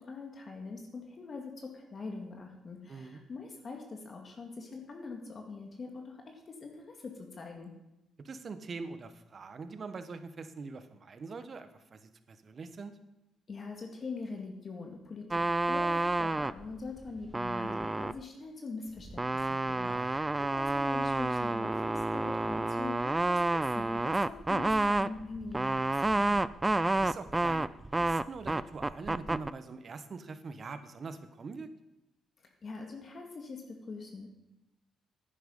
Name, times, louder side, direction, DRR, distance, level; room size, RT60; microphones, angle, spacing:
voice 1, 0.0-7.7 13.5-26.5 32.4-34.3, left 4 dB, 45° left, 2 dB, 2.0 m, -43 dB
voice 2, 2.9-3.2 8.2-13.0 19.7-20.5 26.9-31.7, right 4 dB, 45° right, 10 dB, 1.1 m, -44 dB
sound 1, 15.3-16.6 17.1-18.2 19.0-29.5, right 2 dB, 20° right, 0.4 m, -29 dB
10.5 x 9.4 x 5.3 m, 0.95 s
cardioid pair, 75°, 0 cm